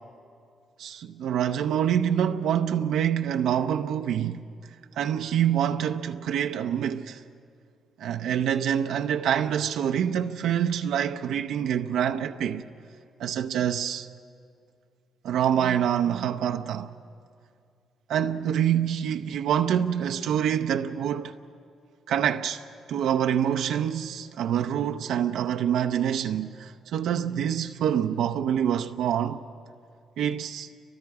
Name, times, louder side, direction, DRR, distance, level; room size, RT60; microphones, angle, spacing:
voice 1, 0.8-4.5 5.0-7.2 8.0-12.6 13.2-14.1 15.2-16.9 18.1-21.3 22.1-22.6 22.9-29.4 30.2-30.7, right 9 dB, 80° right, 0.7 m, -26 dB
29.5 x 24.0 x 4.9 m
cardioid pair, 90°, 0 cm